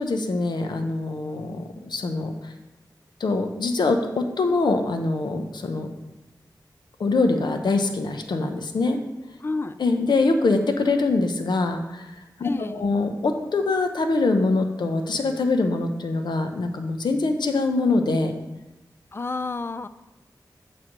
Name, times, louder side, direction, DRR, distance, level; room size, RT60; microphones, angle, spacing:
voice 1, 0.0-2.5 3.2-5.9 7.0-9.0 9.8-12.1 12.4-18.4, left 3 dB, 85° left, 6 dB, 0.8 m, -24 dB
voice 2, 9.4-9.8 12.4-12.8 19.1-19.9, left 3 dB, 30° left, 12 dB, 0.3 m, -30 dB
8.7 x 3.4 x 6.6 m, 0.99 s
wide cardioid pair, 95°, 7 cm